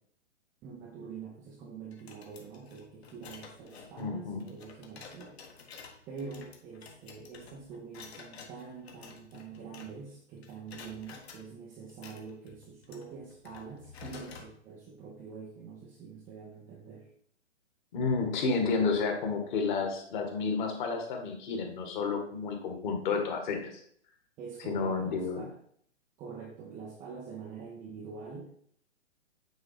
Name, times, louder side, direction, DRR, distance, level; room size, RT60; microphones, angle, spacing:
voice 1, 0.6-5.4 6.1-17.1 24.4-25.6 26.2-28.5, right 5 dB, 10° right, -4 dB, 0.4 m, -45 dB
sound 1, 1.9-10.2 10.4-11.4 11.9-14.5, left 5 dB, 55° left, 1.7 m, -51 dB
voice 2, 4.0-4.4 17.9-23.8 24.7-25.5, left 4 dB, 40° left, 4 dB, 1.7 m, -31 dB
9.0 x 3.9 x 4.7 m, 0.63 s
figure-of-eight pair, 125°, 37 cm